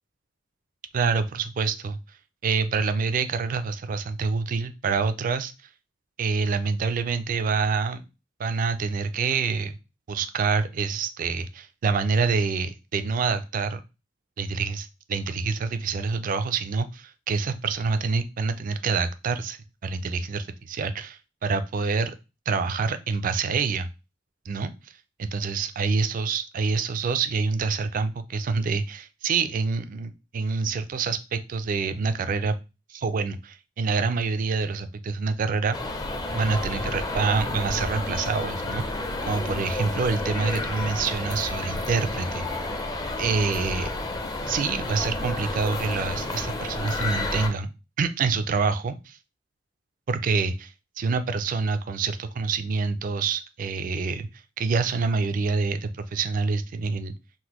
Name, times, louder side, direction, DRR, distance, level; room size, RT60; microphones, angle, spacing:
voice 1, 0.9-2.0 2.4-5.5 6.2-8.0 8.4-9.8 10.1-13.8 14.4-22.1 22.5-23.9 24.5-24.9 25.2-32.5 32.9-35.8 36.3-42.4 43.2-43.9 44.5-47.7 48.0-49.2 50.1-54.3 54.6-57.1, right 4 dB, 45° right, 11 dB, 0.3 m, -26 dB
sound 1, 35.7-47.5, left 2 dB, 20° left, 0.4 m, -31 dB
3.8 x 2.1 x 2.9 m, 0.28 s
head